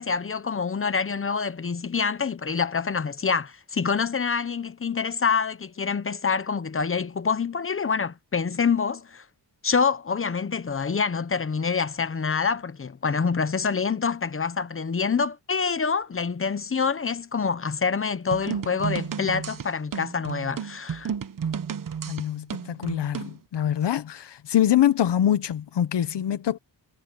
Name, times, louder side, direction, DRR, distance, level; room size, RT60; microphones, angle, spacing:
voice 1, 0.0-9.2 9.6-21.1, left 5 dB, 30° left, 1.0 m, -26 dB
sound 1, 18.3-23.4, right 7 dB, 50° right, 1.3 m, -32 dB
voice 2, 22.1-26.6, left 11 dB, 75° left, 1.2 m, -24 dB
wide cardioid pair, 125°, 42 cm